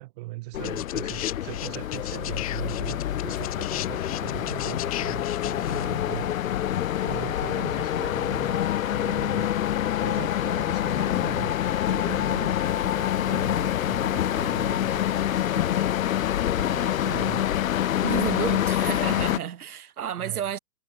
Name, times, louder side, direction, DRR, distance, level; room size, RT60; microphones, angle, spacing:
voice 1, 0.0-6.3 7.0-9.6 10.0-11.6 11.8-15.8 16.6-17.5 20.2-20.5, right 21 dB, 25° right, 2.0 m, -39 dB
sound 1, 0.5-19.4, left 11 dB, 60° left, 1.0 m, -26 dB
sound 2, 0.6-5.8 6.9-7.0, left 14 dB, 25° left, 0.9 m, -36 dB
voice 2, 18.0-20.6, right 9 dB, 75° right, 4.4 m, -31 dB
hypercardioid pair, 175°, 44 cm